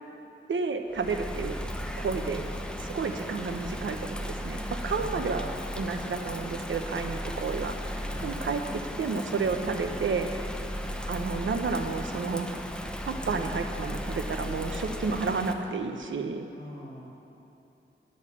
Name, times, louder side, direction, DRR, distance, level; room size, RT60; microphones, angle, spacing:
voice 1, 0.5-1.6 2.0-2.4 2.8-10.3 11.1-12.5 13.0-16.5, right 4 dB, 75° right, 6 dB, 0.8 m, -31 dB
Bird vocalization bird call bird song / Rain, 0.9-15.5, equal, 5° left, 0.8 m, -36 dB
voice 2, 4.9-5.6 8.1-8.4 13.2-13.5 16.5-17.0, left 1 dB, 25° left, -7 dB, 1.8 m, -44 dB
10.0 x 6.4 x 8.5 m, 2.9 s
cardioid pair, 65°, 20 cm